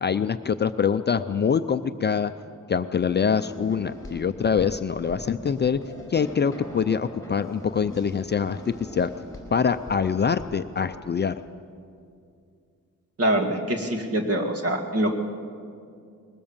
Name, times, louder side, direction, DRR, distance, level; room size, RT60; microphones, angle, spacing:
voice 1, 0.0-2.3 2.7-5.8 6.1-9.1 9.5-11.4, left 6 dB, 35° left, 9 dB, 0.4 m, -24 dB
sound 1, 3.2-11.5, left 1 dB, 10° left, 4.5 m, -42 dB
voice 2, 13.2-15.1, right 1 dB, 45° right, 3 dB, 2.2 m, -24 dB
21.5 x 19.5 x 7.2 m, 2.3 s
wide cardioid pair, 170°, 33 cm